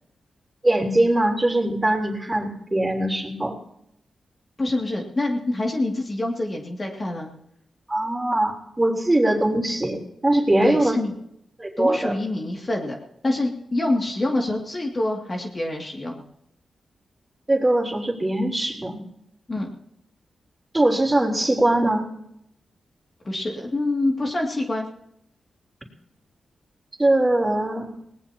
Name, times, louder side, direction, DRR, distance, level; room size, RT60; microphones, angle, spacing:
voice 1, 0.6-3.6 7.9-11.0 11.6-12.1 17.5-19.0 20.7-22.0 27.0-27.9, right 1 dB, 20° right, 0 dB, 3.6 m, -21 dB
voice 2, 4.6-7.3 10.6-11.1 11.8-13.0 13.2-16.2 19.5-19.7 23.2-24.9, left 2 dB, 35° left, 0 dB, 2.4 m, -26 dB
20.0 x 18.5 x 2.9 m, 0.75 s
cardioid pair, 70°, 0 cm